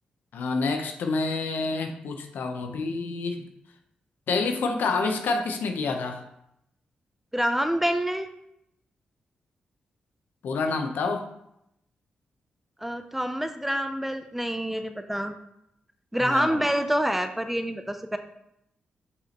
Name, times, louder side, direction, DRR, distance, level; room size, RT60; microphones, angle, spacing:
voice 1, 0.3-3.4 4.3-6.2 10.4-11.3 16.2-16.6, left 3 dB, 80° left, 5 dB, 0.8 m, -28 dB
voice 2, 7.3-8.3 12.8-15.3 16.1-18.2, equal, 5° right, 8 dB, 0.5 m, -27 dB
6.7 x 5.1 x 2.9 m, 0.79 s
cardioid pair, 90°, 3 cm